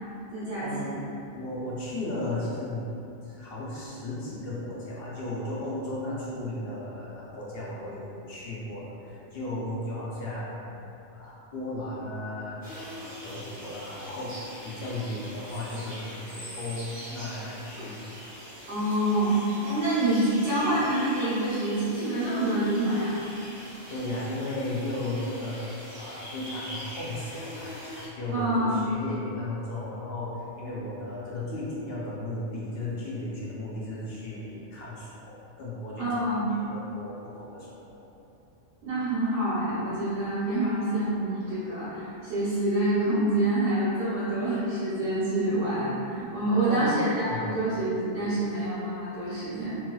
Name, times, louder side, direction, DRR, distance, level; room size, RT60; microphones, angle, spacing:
voice 1, 0.3-1.0 18.7-23.2 28.3-28.8 36.0-36.5 38.8-49.8, right 1 dB, 70° right, -13 dB, 1.1 m, -27 dB
voice 2, 1.3-2.9 3.2-10.8 11.1-18.1 23.9-25.6 26.0-36.1 36.5-38.1 46.4-47.0 47.3-47.4, left 1 dB, 60° left, -7 dB, 0.7 m, -35 dB
sound 1, 12.6-28.1, equal, 25° right, 1.0 m, -43 dB
2.9 x 2.8 x 2.2 m, 2.8 s
omnidirectional pair, 1.2 m